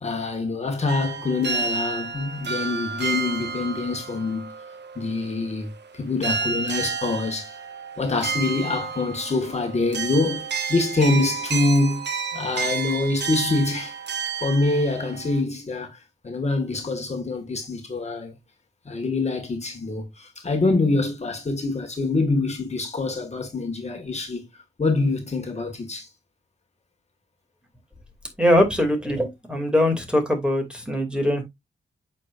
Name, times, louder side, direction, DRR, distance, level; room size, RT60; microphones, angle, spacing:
voice 1, 0.0-4.5 5.0-5.7 5.9-7.6 8.0-12.0 12.3-16.0 16.2-18.3 18.9-24.5 24.8-26.1, left 3 dB, 35° left, 1.8 m, -25 dB
sound 1, 0.9-5.9 6.2-15.4, right 5 dB, 65° right, 1.2 m, -31 dB
voice 2, 28.4-31.4, left 1 dB, 5° right, 2.4 m, -21 dB
8.4 x 5.9 x 2.5 m
wide cardioid pair, 115°, 19 cm